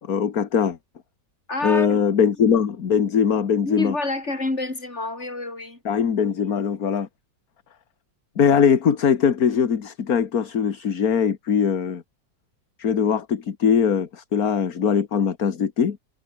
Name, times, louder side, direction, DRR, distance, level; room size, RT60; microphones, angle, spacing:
voice 1, 0.1-0.8 1.6-3.9 5.9-7.1 8.4-12.0 12.8-16.0, left 7 dB, 55° left, 2.0 m, -21 dB
voice 2, 1.5-2.0 3.6-5.8, left 2 dB, 35° left, 5.0 m, -28 dB
omnidirectional pair, 2.0 m